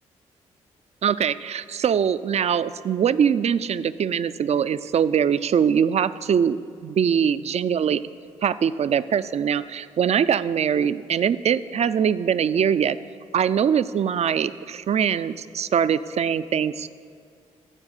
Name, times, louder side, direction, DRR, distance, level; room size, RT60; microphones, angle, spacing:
voice 1, 1.0-8.0 8.4-13.0 13.3-16.9, right 8 dB, 45° right, 15 dB, 0.4 m, -22 dB
10.5 x 4.7 x 6.8 m, 2.2 s
hypercardioid pair, 45°, 15 cm